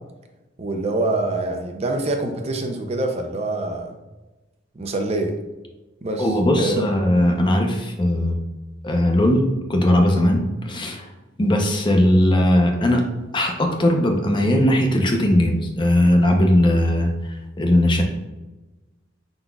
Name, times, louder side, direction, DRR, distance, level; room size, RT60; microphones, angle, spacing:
voice 1, 0.6-3.9 4.8-5.3 6.0-6.8, right 2 dB, 35° right, 4 dB, 0.4 m, -25 dB
voice 2, 6.2-8.4 8.8-9.4 9.7-11.1 11.4-13.0 13.3-17.1 17.6-18.0, left 1 dB, 25° left, 2 dB, 0.6 m, -18 dB
5.1 x 3.9 x 2.3 m, 1.1 s
head